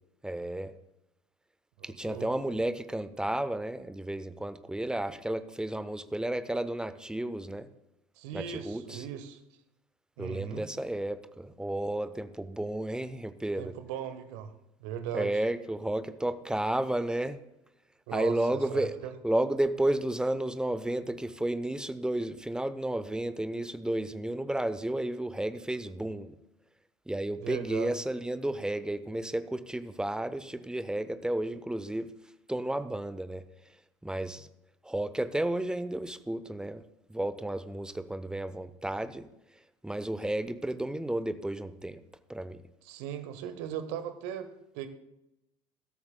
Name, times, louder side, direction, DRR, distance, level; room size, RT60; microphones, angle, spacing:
voice 1, 0.2-0.7 1.8-7.7 8.3-9.1 10.2-13.7 15.1-17.4 18.1-18.9 19.2-26.3 27.1-32.1 32.5-33.4 34.0-34.5 34.8-36.8 37.1-39.3 39.8-42.0 42.3-42.6, right 1 dB, 5° right, 13 dB, 0.8 m, -32 dB
voice 2, 1.8-2.6 8.2-9.4 10.2-10.7 13.6-14.5 14.8-15.4 18.1-19.1 27.4-27.9 42.8-44.5 44.7-44.9, right 9 dB, 60° right, 10 dB, 1.3 m, -38 dB
22.5 x 13.0 x 2.3 m, 0.88 s
figure-of-eight pair, 65°, 17 cm